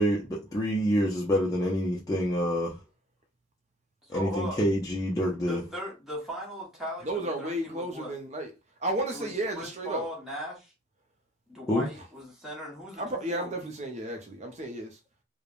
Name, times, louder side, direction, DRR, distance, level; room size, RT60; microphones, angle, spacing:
voice 1, 0.0-2.8 4.1-5.6 11.7-11.8, equal, 20° left, 0.4 m, -27 dB
voice 2, 4.1-4.6 5.4-8.2 9.1-10.7 11.5-13.6, equal, ahead, 0.9 m, -38 dB
voice 3, 7.0-8.5 8.8-10.1 13.0-15.0, right 1 dB, 35° right, 0.5 m, -33 dB
3.1 x 2.1 x 2.4 m
head